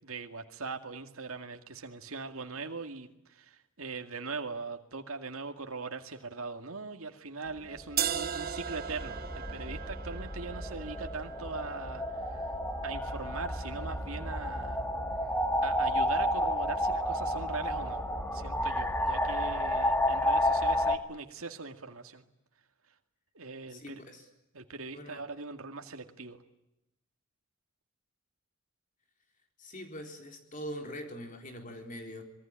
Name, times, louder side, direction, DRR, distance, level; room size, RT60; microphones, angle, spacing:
voice 1, 0.0-12.5 12.8-14.9 15.6-18.0 18.3-22.3 23.3-24.0 24.5-26.4, right 4 dB, 80° right, 5 dB, 2.2 m, -41 dB
sound 1, 7.7-21.0, left 1 dB, 10° left, 1.8 m, -31 dB
sound 2, 8.0-13.9, right 9 dB, 45° right, 1.2 m, -39 dB
voice 2, 23.7-24.3 24.9-25.2 29.6-32.2, equal, 40° left, 4 dB, 3.9 m, -43 dB
26.0 x 21.5 x 8.9 m, 0.87 s
head